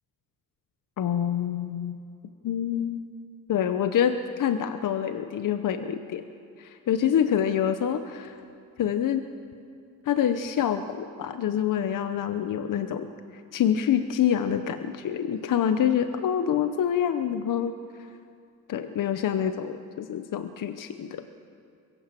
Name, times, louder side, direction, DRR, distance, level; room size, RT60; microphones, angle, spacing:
voice 1, 1.0-2.0 2.4-3.1 3.5-6.2 6.6-8.4 8.8-9.3 10.1-13.1 13.5-17.7 18.7-21.2, left 9 dB, 65° left, 9 dB, 0.9 m, -26 dB
23.0 x 15.5 x 7.5 m, 2.4 s
cardioid pair, 135°, 34 cm